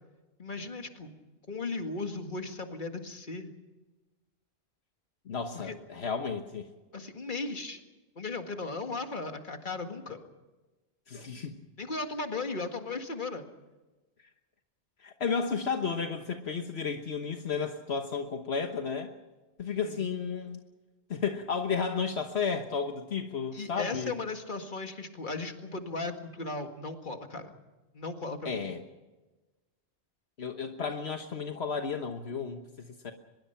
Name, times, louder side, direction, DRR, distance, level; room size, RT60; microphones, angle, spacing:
voice 1, 0.4-1.1 1.5-3.5 5.6-5.7 6.9-7.8 8.2-10.2 11.8-13.5 19.8-20.0 23.5-27.5 27.9-28.6, left 3 dB, 45° left, 5 dB, 2.1 m, -36 dB
voice 2, 5.3-6.7 11.1-11.6 15.0-19.1 19.6-20.6 21.1-24.2 28.4-28.8 30.4-33.1, left 5 dB, 70° left, 5 dB, 1.5 m, -33 dB
24.0 x 21.5 x 5.8 m, 1.2 s
omnidirectional pair, 1.1 m